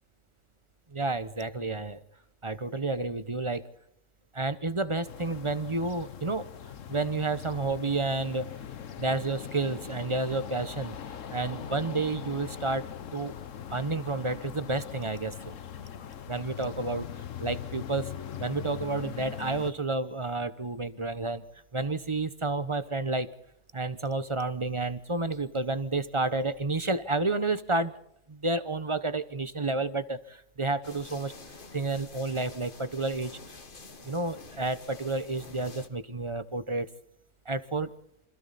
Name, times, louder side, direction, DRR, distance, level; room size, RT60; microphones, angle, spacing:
voice 1, 0.9-2.0 2.4-3.7 4.3-6.5 6.9-8.5 9.0-13.3 13.7-15.5 16.3-17.1 17.4-18.1 18.4-21.4 21.7-23.3 23.7-27.9 28.3-31.3 31.7-33.6 34.0-36.9 37.5-37.9, right 3 dB, 25° right, 13 dB, 0.9 m, -30 dB
sound 1, 5.1-19.7, left 8 dB, 80° left, 1.4 m, -41 dB
sound 2, 30.8-35.9, left 3 dB, 40° left, 1.7 m, -48 dB
27.5 x 25.5 x 4.2 m, 0.75 s
omnidirectional pair, 1.3 m